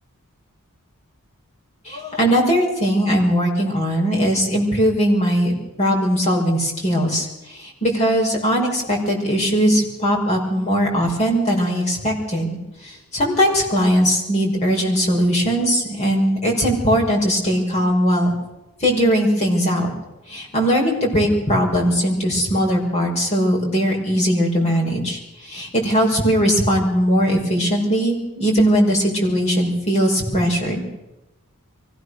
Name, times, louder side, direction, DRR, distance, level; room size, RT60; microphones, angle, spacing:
voice 1, 1.9-7.3 7.6-12.6 12.8-18.3 18.8-19.9 20.3-30.8, equal, 30° left, -2 dB, 5.5 m, -19 dB
23.5 x 16.5 x 6.6 m, 0.99 s
head